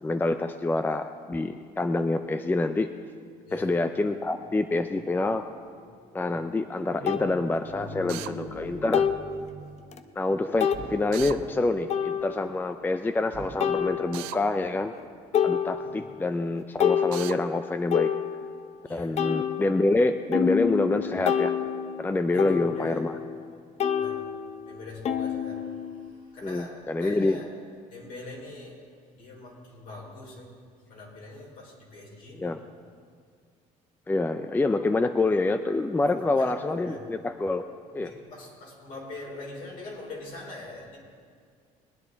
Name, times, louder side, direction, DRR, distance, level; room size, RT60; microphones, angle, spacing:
voice 1, 0.0-2.9 3.5-5.5 6.1-9.0 10.2-14.9 15.4-18.1 18.9-21.6 22.0-23.1 26.4-27.4 32.4-32.6 34.1-37.7 37.9-38.1, left 2 dB, 15° left, 9 dB, 0.5 m, -26 dB
voice 2, 5.7-6.4 6.7-10.3 15.8-16.0 18.9-19.1 22.3-23.1 23.9-24.2 24.7-26.7 27.0-27.5 27.9-28.8 29.1-30.5 30.9-32.5 35.9-37.0 37.9-41.0, left 2 dB, 65° left, -2 dB, 4.0 m, -43 dB
sound 1, 6.2-6.3 7.1-7.3 8.9-9.3 9.9-10.0 10.6-10.9 11.9-12.5 13.6-14.4 14.9-15.0 15.3-16.2 16.5-18.7 19.2-23.5 23.8-26.1, left 8 dB, 45° left, 0.7 m, -28 dB
Drill, 8.1-8.3 11.1-11.4 14.1-14.4 17.1-17.4, right 17 dB, 90° right, 0.4 m, -36 dB
sound 2, 10.7-12.6 13.2-14.5 15.0-15.9, right 3 dB, 45° right, 2.4 m, -44 dB
20.5 x 9.6 x 4.0 m, 2.1 s
cardioid pair, 95°, 15 cm